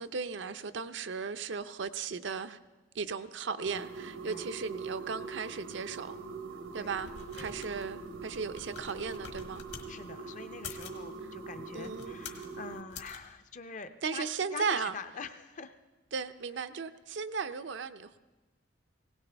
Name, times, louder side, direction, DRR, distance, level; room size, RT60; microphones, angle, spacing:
voice 1, 0.0-2.6 2.9-6.2 6.7-9.6 11.7-12.2 14.0-14.9 16.1-18.2, right 5 dB, 65° right, 0.5 m, -36 dB
sound 1, 3.7-12.8, right 4 dB, 85° right, 1.1 m, -43 dB
sound 2, 6.7-9.9 10.5-11.0 11.7-12.5 12.9-13.2, left 5 dB, 60° left, 1.6 m, -47 dB
voice 2, 9.9-15.7, left 4 dB, 40° left, 0.6 m, -45 dB
19.5 x 17.5 x 3.4 m
head